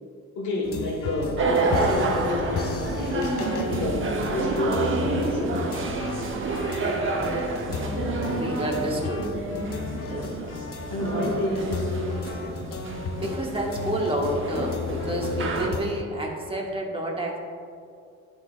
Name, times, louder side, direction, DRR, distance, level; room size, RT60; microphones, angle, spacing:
voice 1, 0.3-5.8 10.0-10.1 10.9-12.1, left 1 dB, 75° left, -4 dB, 1.5 m, -29 dB
sound 1, 0.6-16.0, left 5 dB, 50° left, 0.6 m, -34 dB
sound 2, 1.4-15.7, right 3 dB, 40° right, 0.9 m, -29 dB
sound 3, 1.7-8.2, right 2 dB, 80° right, 1.5 m, -43 dB
voice 2, 7.7-9.3 13.2-17.4, right 1 dB, 20° right, -1 dB, 1.4 m, -29 dB
11.0 x 4.9 x 2.4 m, 2.4 s
cardioid pair, 90°, 30 cm